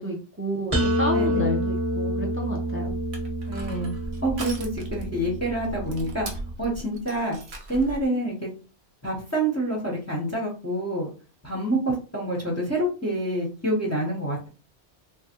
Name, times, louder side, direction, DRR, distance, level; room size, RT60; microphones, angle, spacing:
voice 1, 0.0-3.0, right 1 dB, 20° right, 0 dB, 0.4 m, -31 dB
sound 1, 0.7-6.5, right 1 dB, 35° right, 1.0 m, -28 dB
voice 2, 1.1-1.6 3.5-3.9 4.2-6.3 6.6-7.4 7.7-8.5 9.0-11.1 11.4-14.5, right 1 dB, 15° left, -2 dB, 0.9 m, -27 dB
Crushing, 2.9-8.1, right 1 dB, 80° right, 1.0 m, -38 dB
3.2 x 2.2 x 2.9 m, 0.34 s
omnidirectional pair, 1.1 m